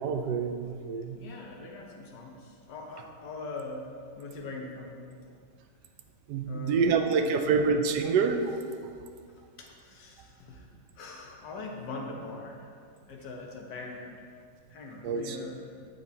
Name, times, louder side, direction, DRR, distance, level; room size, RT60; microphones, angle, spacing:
voice 1, 0.0-1.2 6.3-8.6 15.0-15.5, right 5 dB, 75° right, 6 dB, 1.1 m, -27 dB
voice 2, 1.1-5.2 6.5-7.8 9.6-10.6 11.0-12.7 13.1-14.2 14.7-15.7, left 3 dB, 75° left, 0 dB, 1.6 m, -42 dB
9.2 x 6.9 x 2.7 m, 2.2 s
omnidirectional pair, 1.9 m